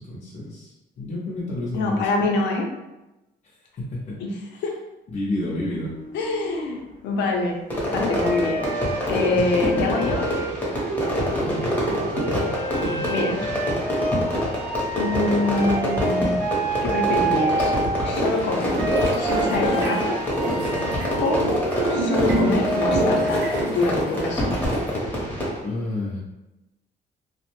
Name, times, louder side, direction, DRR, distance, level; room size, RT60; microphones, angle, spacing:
voice 1, 0.0-2.1 3.8-4.2 5.1-5.9 11.4-13.1 14.6-14.7 25.6-26.2, left 1 dB, 45° left, -7 dB, 0.6 m, -31 dB
voice 2, 1.7-2.6 4.2-4.3 4.6-4.7 6.1-7.6 7.8-8.7 9.1-10.2 13.1-13.4 15.0-16.4 16.8-17.7 18.0-18.8 19.2-20.2 21.2-21.5 21.9-24.6, left 2 dB, 90° left, 1 dB, 0.6 m, -25 dB
sound 1, 5.7-6.9 8.2-18.4 18.7-23.7, right 2 dB, 50° right, 0.6 m, -29 dB
Fireworks, 7.7-25.6, equal, 10° left, 0.8 m, -26 dB
sound 2, 18.1-24.9, right 1 dB, 90° right, 0.6 m, -27 dB
2.5 x 2.0 x 2.9 m, 1.0 s
cardioid pair, 130°, 18 cm